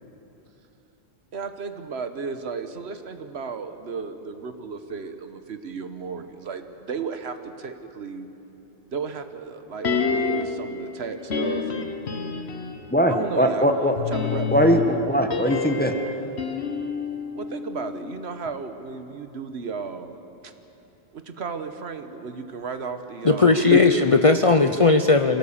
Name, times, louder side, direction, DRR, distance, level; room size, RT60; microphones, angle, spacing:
voice 1, 1.3-8.3 8.9-11.9 13.1-13.7 14.1-14.8 17.3-20.5 21.1-23.7, right 5 dB, 75° right, 9 dB, 1.3 m, -34 dB
sound 1, 9.8-10.7 11.3-12.9 14.0-18.2 18.5-18.6, left 5 dB, 80° left, 1.4 m, -28 dB
voice 2, 12.9-13.9 14.5-16.0 23.7-23.8, equal, 10° left, 4 dB, 1.2 m, -20 dB
voice 3, 23.2-25.4, left 3 dB, 40° left, 7 dB, 0.6 m, -17 dB
25.0 x 17.5 x 7.2 m, 3.0 s
omnidirectional pair, 1.1 m